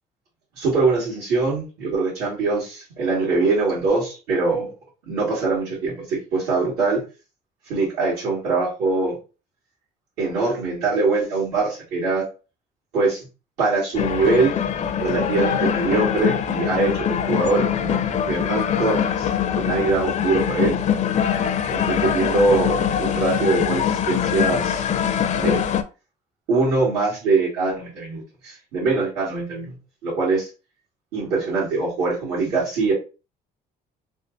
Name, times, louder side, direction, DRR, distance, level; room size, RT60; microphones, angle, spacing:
voice 1, 0.6-4.7 5.1-7.0 7.7-9.2 10.2-12.3 12.9-13.3 13.6-14.6 15.0-18.0 18.3-19.3 19.6-20.8 21.7-24.9 25.3-25.6 26.5-29.7 30.0-30.5 31.1-32.9, right 3 dB, 85° right, -8 dB, 1.7 m, -23 dB
sound 1, 13.9-25.8, left 8 dB, 45° left, 0.4 m, -23 dB
3.5 x 2.0 x 3.7 m, 0.32 s
cardioid pair, 110°, 17 cm